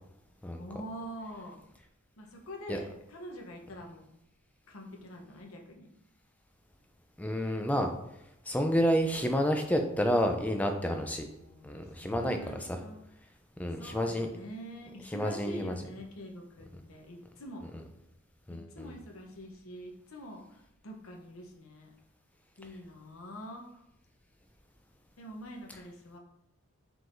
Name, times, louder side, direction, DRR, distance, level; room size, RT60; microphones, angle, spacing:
voice 1, 0.6-1.6 2.2-4.0 4.7-5.9 11.1-13.0 13.7-17.6 18.5-21.9 22.6-23.8 25.2-26.2, equal, 70° left, 1 dB, 0.8 m, -45 dB
voice 2, 7.2-7.9 8.5-11.3 11.6-12.4 13.6-14.3 15.1-15.7 18.5-18.9, equal, 5° left, 4 dB, 0.4 m, -29 dB
4.6 x 3.8 x 2.6 m, 0.83 s
head